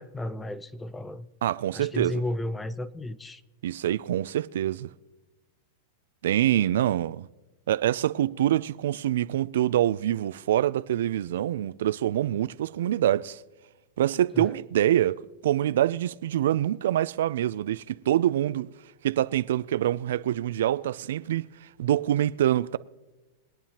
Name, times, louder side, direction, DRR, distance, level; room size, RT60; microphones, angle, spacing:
voice 1, 0.0-1.3 1.7-3.4 14.3-14.6, left 1 dB, 10° left, 0.5 m, -33 dB
voice 2, 1.4-2.2 3.6-4.9 6.2-7.3 7.7-13.4 14.0-18.7 19.0-21.5 21.8-22.8, right 12 dB, 80° right, 0.3 m, -25 dB
24.0 x 9.0 x 2.9 m
supercardioid pair, 135°, 0 cm